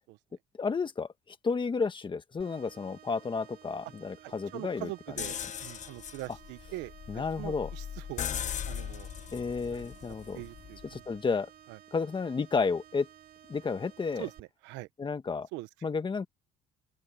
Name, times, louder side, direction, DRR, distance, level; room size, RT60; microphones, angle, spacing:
voice 1, 0.6-4.9 7.1-7.7 9.3-10.4 10.9-11.5 11.9-13.1 13.5-14.3 15.0-15.5 15.8-16.3, left 4 dB, 25° left, 1.7 m, -32 dB
sound 1, 2.4-14.4, right 10 dB, 55° right, 4.0 m, -55 dB
voice 2, 4.2-8.3 8.7-9.1 9.7-9.8 10.3-11.2 11.7-11.8 14.2-14.9 15.5-15.7, right 19 dB, 85° right, 1.1 m, -43 dB
sound 2, 5.2-11.0, left 9 dB, 40° left, 0.9 m, -39 dB
open air
cardioid pair, 110°, 19 cm